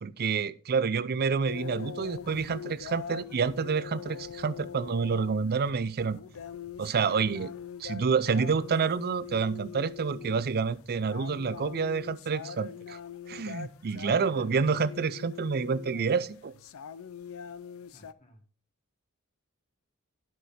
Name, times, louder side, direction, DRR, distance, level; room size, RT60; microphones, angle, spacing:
voice 1, 0.0-6.2 6.8-7.5 7.8-13.0 13.3-16.5, right 5 dB, 45° right, 0.5 m, -28 dB
sound 1, 1.4-18.1, left 7 dB, 70° left, 0.5 m, -43 dB
voice 2, 14.0-14.6 17.9-18.4, right 1 dB, 30° left, 1.6 m, -46 dB
11.0 x 6.0 x 4.2 m
head